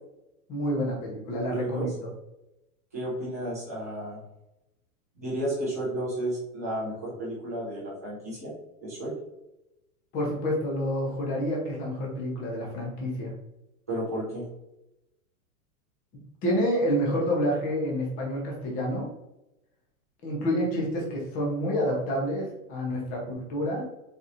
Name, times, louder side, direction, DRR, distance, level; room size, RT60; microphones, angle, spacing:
voice 1, 0.5-1.9 10.1-13.3 16.4-19.1 20.2-23.8, equal, 20° left, -2 dB, 0.8 m, -28 dB
voice 2, 1.5-1.9 2.9-4.2 5.2-8.5 8.8-9.1 13.9-14.5, right 1 dB, 10° right, -10 dB, 0.3 m, -32 dB
4.3 x 3.1 x 2.5 m, 0.90 s
supercardioid pair, 165°, 46 cm